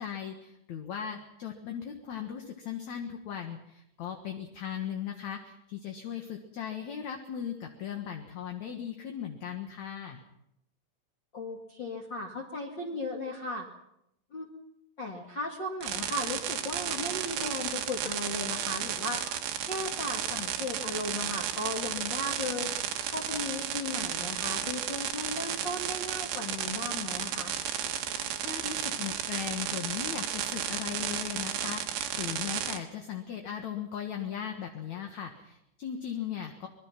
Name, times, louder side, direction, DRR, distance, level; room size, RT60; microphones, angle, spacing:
voice 1, 0.0-10.2 28.4-36.7, left 8 dB, 55° left, 4 dB, 2.2 m, -38 dB
voice 2, 11.3-13.7 14.3-14.5 15.0-19.2 19.6-22.7 23.1-27.6, left 2 dB, 35° left, -1 dB, 2.1 m, -36 dB
sound 1, 15.8-32.8, right 10 dB, 80° right, 3.7 m, -33 dB
25.5 x 21.0 x 5.9 m, 0.80 s
omnidirectional pair, 5.0 m